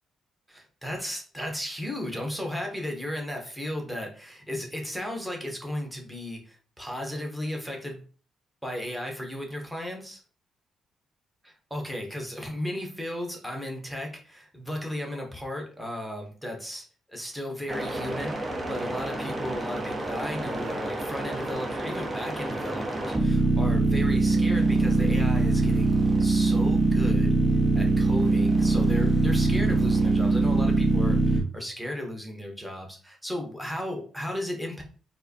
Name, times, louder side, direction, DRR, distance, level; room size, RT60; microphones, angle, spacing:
voice 1, 0.5-8.0 8.6-10.2 11.4-25.9 26.2-27.3 27.7-34.8, left 1 dB, ahead, 1 dB, 1.1 m, -35 dB
sound 1, 17.7-31.4, right 2 dB, 20° right, 0.9 m, -24 dB
4.6 x 2.1 x 2.9 m, 0.39 s
cardioid pair, 90°, 0 cm